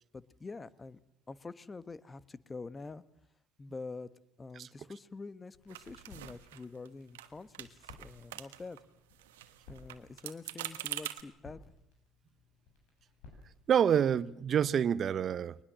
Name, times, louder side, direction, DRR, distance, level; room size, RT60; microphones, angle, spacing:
voice 1, 0.1-1.0 1.3-3.0 3.6-4.1 4.4-8.8 9.7-11.6, left 3 dB, 25° left, 1.1 m, -46 dB
sound 1, 5.5-14.4, left 3 dB, 75° left, 7.7 m, -59 dB
sound 2, 5.7-6.9 7.1-7.3 7.5-8.8 9.1-11.2, right 14 dB, 85° right, 1.3 m, -44 dB
voice 2, 13.7-15.6, right 8 dB, 45° right, 0.9 m, -27 dB
22.0 x 20.0 x 7.5 m
hypercardioid pair, 70°, 0 cm